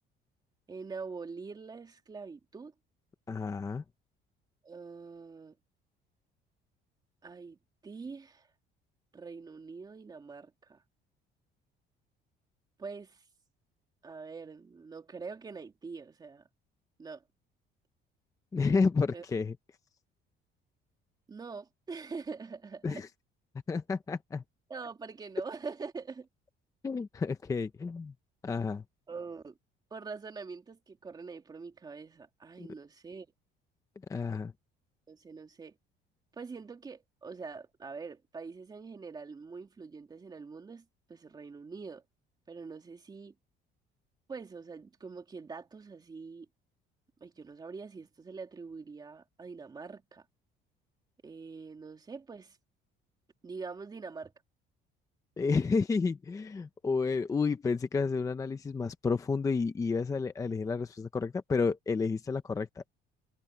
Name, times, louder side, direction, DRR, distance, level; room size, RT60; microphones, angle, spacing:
voice 1, 0.7-2.7 4.6-5.5 7.2-8.5 9.1-10.8 12.8-13.2 14.0-16.4 17.0-17.2 19.1-19.2 21.3-23.0 24.7-26.3 29.1-29.6 29.9-33.3 35.1-35.7 36.4-42.0 42.5-43.3 44.3-46.5 47.2-50.2 51.2-52.6 53.4-54.3, right 4 dB, 20° right, 2.9 m, -44 dB
voice 2, 3.3-3.8 18.5-19.6 22.8-23.1 23.7-24.4 26.8-28.1 28.4-28.8 34.1-34.5 55.4-62.9, left 4 dB, 15° left, 0.7 m, -30 dB
cardioid pair, 165°, 20 cm